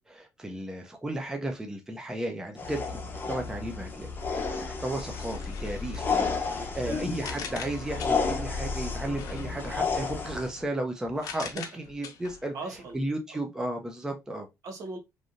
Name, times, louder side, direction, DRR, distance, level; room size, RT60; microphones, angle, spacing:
voice 1, 0.0-2.8 3.3-12.5 12.9-14.5, right 1 dB, 10° right, 0.6 m, -34 dB
sound 1, 2.6-10.5, left 4 dB, 30° left, 0.7 m, -32 dB
sound 2, 5.1-8.5 9.1-13.0, left 6 dB, 75° left, 0.7 m, -44 dB
voice 2, 6.4-7.1 11.5-11.6 12.5-13.0 13.3-13.4 14.6-15.0, right 3 dB, 65° right, 1.0 m, -39 dB
3.2 x 2.6 x 2.5 m
cardioid pair, 115°, 6 cm